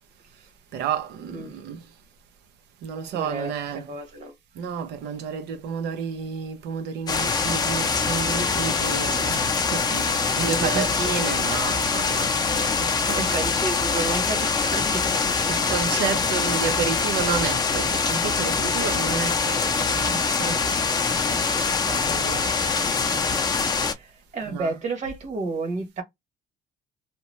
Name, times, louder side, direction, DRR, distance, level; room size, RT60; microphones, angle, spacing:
voice 1, 0.7-1.8 2.8-3.9 4.6-13.3 15.5-20.6 21.3-22.5 24.5-24.8, right 7 dB, 85° right, 0.7 m, -31 dB
voice 2, 3.1-4.3 10.4-11.2 12.5-15.6 21.8-26.0, right 3 dB, 45° right, 1.2 m, -33 dB
sound 1, 7.1-23.9, left 5 dB, 25° left, 0.5 m, -24 dB
2.9 x 2.0 x 3.0 m
cardioid pair, 110°, 17 cm